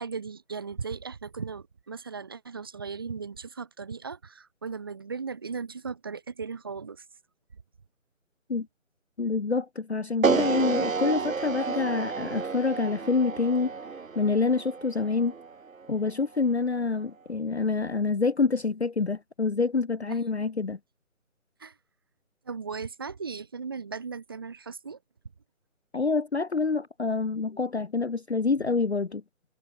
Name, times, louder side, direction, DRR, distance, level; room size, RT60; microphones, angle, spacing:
voice 1, 0.0-7.0 20.1-20.2 21.6-21.7 22.4-25.0, right 5 dB, 15° right, 3.3 m, -37 dB
voice 2, 9.2-13.7 14.2-15.3 15.9-20.8 25.9-29.2, left 4 dB, 50° left, 0.7 m, -27 dB
sound 1, 10.2-16.4, right 5 dB, 75° right, 1.3 m, -30 dB
figure-of-eight pair, 180°, 41 cm